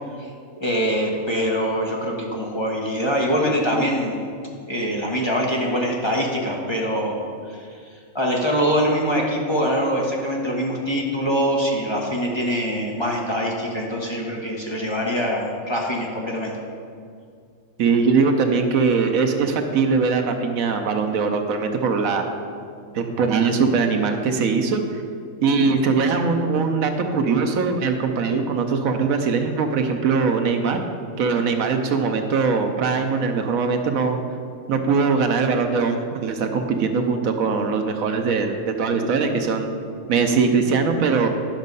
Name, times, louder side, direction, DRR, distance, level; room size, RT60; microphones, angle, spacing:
voice 1, 0.6-4.2 4.7-7.2 7.5-7.7 8.1-16.5, equal, 20° left, -2 dB, 1.2 m, -23 dB
voice 2, 17.8-22.2 22.9-25.0 25.4-30.8 31.2-34.2 34.7-39.7 40.1-41.3, right 5 dB, 80° right, 5 dB, 1.2 m, -21 dB
10.5 x 6.3 x 5.4 m, 2.3 s
omnidirectional pair, 1.4 m